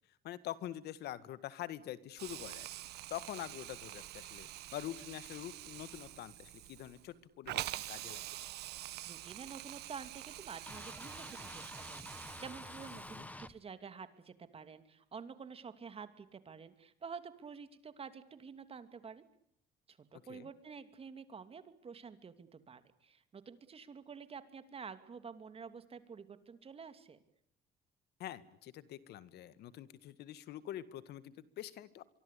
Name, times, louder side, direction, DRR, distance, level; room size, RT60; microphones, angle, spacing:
voice 1, 0.2-2.7 3.1-8.3 13.1-13.3 20.3-20.5 28.2-32.0, left 12 dB, 75° left, 16 dB, 1.8 m, -45 dB
Hiss, 2.2-13.4, right 15 dB, 75° right, 1.3 m, -46 dB
voice 2, 8.8-19.2 19.9-27.2, right 6 dB, 35° right, 11 dB, 2.8 m, -49 dB
sound 1, 10.7-13.5, left 1 dB, 10° left, 1.4 m, -48 dB
25.0 x 24.0 x 8.5 m, 0.71 s
cardioid pair, 110°, 17 cm